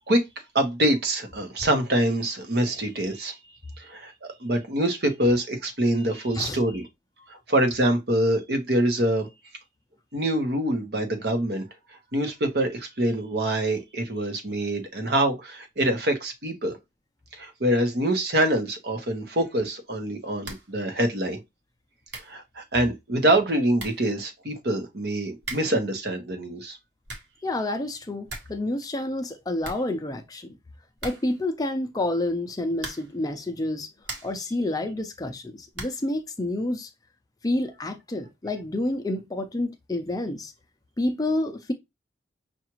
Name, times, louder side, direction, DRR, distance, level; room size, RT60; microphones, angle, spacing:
voice 1, 0.5-3.3 3.8-4.1 4.4-6.9 7.3-9.3 10.1-11.6 12.1-16.8 17.3-21.4 22.2-26.8, right 1 dB, 60° right, 0.9 m, -25 dB
sound 1, 20.4-20.8 21.1-21.2 21.8-21.9 22.1-22.4 23.4-23.5 23.8-24.1 25.4-25.9 26.8-27.4 27.8-27.9 28.1-28.6 28.9-29.0 29.3-29.4 29.6-30.4 31.0-31.5 32.7-33.2 33.7-34.5 35.7-36.1, right 3 dB, 80° right, 1.3 m, -40 dB
voice 2, 27.4-30.6 31.0-33.9 34.2-36.9 37.4-40.5 41.0-41.7, left 1 dB, 20° left, 0.5 m, -29 dB
5.8 x 2.4 x 3.0 m
head